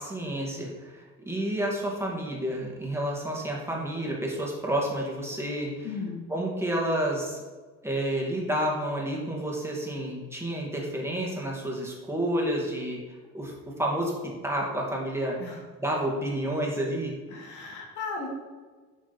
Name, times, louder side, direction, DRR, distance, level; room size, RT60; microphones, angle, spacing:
voice 1, 0.0-5.9 6.3-7.4 7.8-13.0 13.3-14.1 14.4-17.1, right 1 dB, 10° right, -3 dB, 2.3 m, -30 dB
voice 2, 5.8-6.3 15.4-15.6 17.3-18.3, left 4 dB, 85° left, 0 dB, 2.0 m, -36 dB
9.0 x 5.2 x 4.3 m, 1.4 s
cardioid pair, 90°, 30 cm